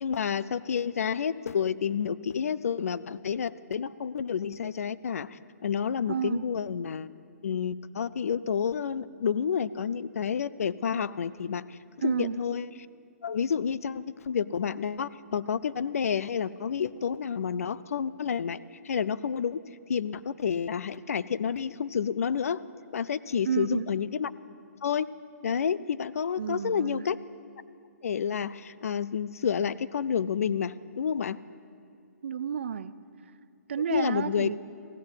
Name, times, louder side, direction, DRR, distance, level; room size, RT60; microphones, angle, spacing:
voice 1, 0.0-7.1 7.4-11.8 12.0-12.7 13.2-19.6 19.9-22.6 22.9-24.3 24.8-25.1 25.4-27.2 28.0-31.4 33.9-34.5, left 7 dB, 55° left, 0.4 m, -29 dB
voice 2, 6.1-6.4 12.0-12.4 23.4-23.9 26.4-27.1 32.2-32.9 33.7-34.6, right 8 dB, 45° right, 0.4 m, -31 dB
15.5 x 9.4 x 8.0 m
hypercardioid pair, 175°, 9 cm